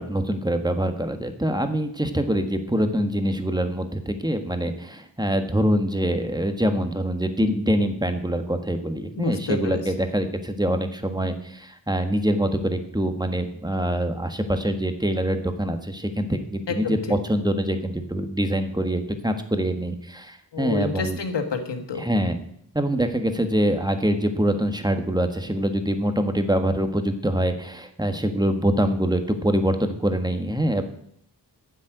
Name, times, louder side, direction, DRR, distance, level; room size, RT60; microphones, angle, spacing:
voice 1, 0.0-21.2 22.0-22.4 22.7-30.8, equal, 10° right, 7 dB, 1.4 m, -24 dB
voice 2, 9.2-9.8 16.7-17.0 20.5-22.0, left 5 dB, 80° left, 7 dB, 1.6 m, -28 dB
10.0 x 7.6 x 9.2 m, 0.68 s
wide cardioid pair, 80°, 42 cm